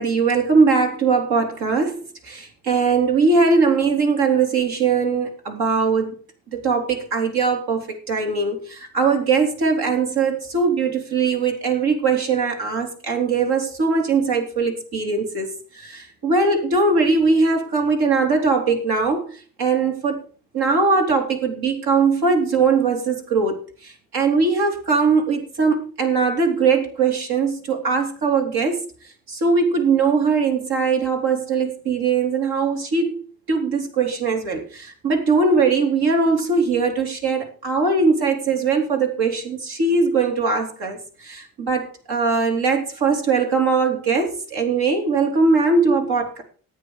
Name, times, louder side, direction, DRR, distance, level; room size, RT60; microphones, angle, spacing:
voice 1, 0.0-6.1 6.5-20.2 20.5-28.9 29.3-33.2 33.5-46.4, right 4 dB, 80° right, 3 dB, 4.0 m, -20 dB
14.0 x 9.1 x 4.9 m, 0.40 s
cardioid pair, 90°, 38 cm